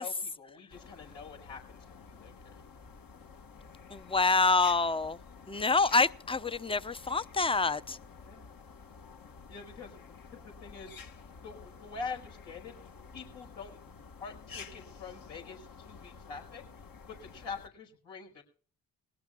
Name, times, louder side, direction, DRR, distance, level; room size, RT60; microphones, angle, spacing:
voice 1, 0.0-2.6 8.3-8.5 9.5-11.0 11.3-12.8 13.1-13.8 14.2-16.6 17.1-18.4, left 5 dB, 70° left, 5.5 m, -45 dB
sound 1, 0.7-17.7, left 5 dB, 50° left, 1.7 m, -51 dB
voice 2, 3.9-5.2 5.5-8.0, left 3 dB, 10° left, 0.8 m, -27 dB
21.0 x 17.5 x 2.4 m
hypercardioid pair, 50°, 44 cm